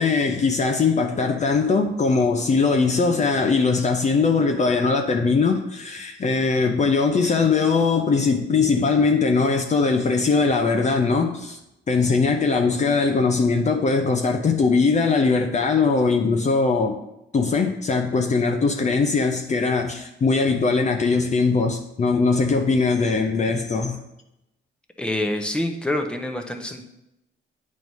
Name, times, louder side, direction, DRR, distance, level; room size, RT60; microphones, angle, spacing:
voice 1, 0.0-11.6 11.9-17.0 17.3-24.0, left 4 dB, 35° left, 4 dB, 0.6 m, -21 dB
voice 2, 25.0-26.8, left 1 dB, 5° left, 3 dB, 0.9 m, -26 dB
8.8 x 3.2 x 5.4 m, 0.88 s
cardioid pair, 90°, 20 cm